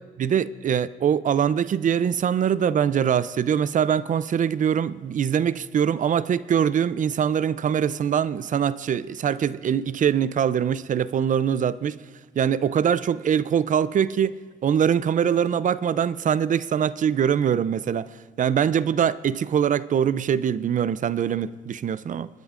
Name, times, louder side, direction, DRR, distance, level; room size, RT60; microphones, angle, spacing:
voice 1, 0.2-12.0 12.4-22.3, right 8 dB, 40° right, 0.4 m, -23 dB
28.0 x 9.7 x 2.5 m
cardioid pair, 90°, 20 cm